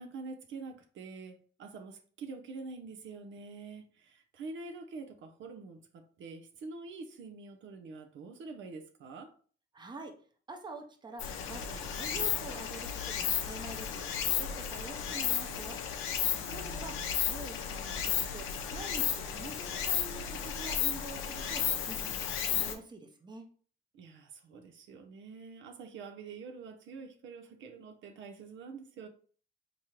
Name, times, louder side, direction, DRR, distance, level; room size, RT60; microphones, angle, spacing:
voice 1, 0.0-9.3 16.3-17.1 23.9-29.1, right 4 dB, 75° right, 0.6 m, -46 dB
voice 2, 9.7-10.2 10.5-15.8 16.5-18.5 18.7-23.5, right 3 dB, 20° right, 0.7 m, -46 dB
Stream, 11.2-22.7, left 8 dB, 85° left, 0.6 m, -33 dB
3.7 x 3.0 x 3.0 m
cardioid pair, 90°, 20 cm